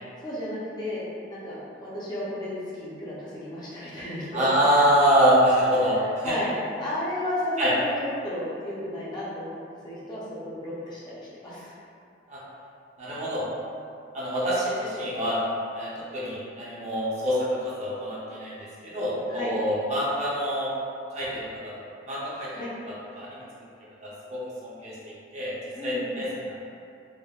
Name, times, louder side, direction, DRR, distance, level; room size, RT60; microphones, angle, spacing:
voice 1, 0.2-4.5 6.2-6.5 6.8-9.6 9.8-11.7 19.3-19.5 22.5-22.7 25.7-26.2, left 1 dB, 20° left, -9 dB, 0.5 m, -33 dB
voice 2, 4.3-6.4 7.6-7.7 12.3-12.4 13.0-13.5 14.1-15.4 15.7-18.6 18.8-20.7 21.1-21.7 22.1-22.5 22.9-23.4 24.0-25.5 25.8-26.5, equal, 40° right, -8 dB, 0.7 m, -25 dB
3.5 x 2.1 x 2.3 m, 2.5 s
head